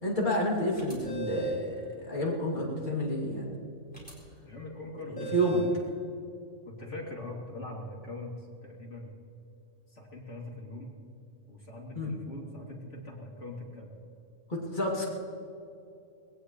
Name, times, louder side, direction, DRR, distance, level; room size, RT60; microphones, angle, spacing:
voice 1, 0.0-3.5 5.1-5.6 11.9-12.2 14.5-15.1, equal, 35° left, -4 dB, 3.0 m, -30 dB
sound 1, 0.8-1.7 3.9-4.1 5.2-5.8, right 5 dB, 5° left, 4.3 m, -36 dB
voice 2, 4.4-5.9 6.6-9.2 9.9-11.0 11.5-13.9, left 1 dB, 60° left, -3 dB, 3.4 m, -42 dB
20.0 x 18.0 x 3.2 m, 2.7 s
omnidirectional pair, 1.4 m